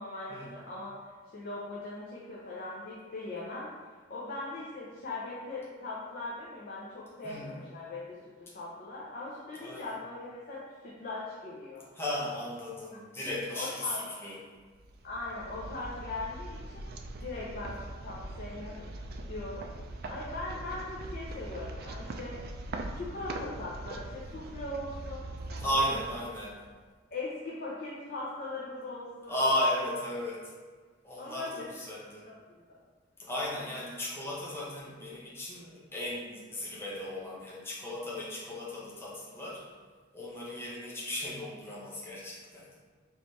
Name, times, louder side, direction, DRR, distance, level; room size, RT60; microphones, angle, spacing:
voice 1, 0.0-8.2 8.5-12.0 13.5-14.0 15.0-16.9 17.2-18.9 19.3-19.7 20.0-22.4 22.9-26.0 27.1-29.4 31.2-31.7 32.2-32.4 32.7-32.8, left 2 dB, 50° left, -6 dB, 0.7 m, -40 dB
voice 2, 7.2-7.6 9.6-9.9 12.0-14.3 25.6-26.5 29.3-30.4 31.0-32.2 33.2-39.6 40.1-42.7, left 1 dB, 15° left, -7 dB, 0.8 m, -35 dB
sound 1, 14.7-26.8, right 2 dB, 50° right, 0.4 m, -42 dB
4.3 x 3.2 x 3.1 m, 1.5 s
head